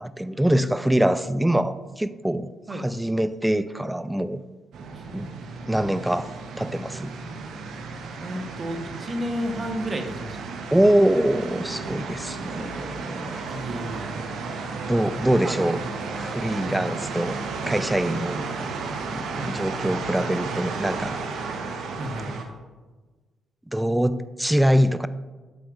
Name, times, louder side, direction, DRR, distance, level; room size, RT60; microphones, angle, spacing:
voice 1, 0.0-4.4 5.1-5.3 5.6-7.1 10.7-13.4 14.9-15.8 16.1-17.4 17.7-18.4 19.1-21.2 23.7-25.1, right 1 dB, 10° right, 14 dB, 0.4 m, -24 dB
sound 1, 4.7-22.4, right 4 dB, 60° right, 0.8 m, -33 dB
voice 2, 8.2-10.4 13.4-14.2 15.2-16.0 16.6-16.9 18.4-18.5 19.4-19.5 22.0-22.3, equal, 35° right, 5 dB, 1.0 m, -32 dB
7.9 x 7.9 x 2.5 m, 1.3 s
figure-of-eight pair, 40°, 0 cm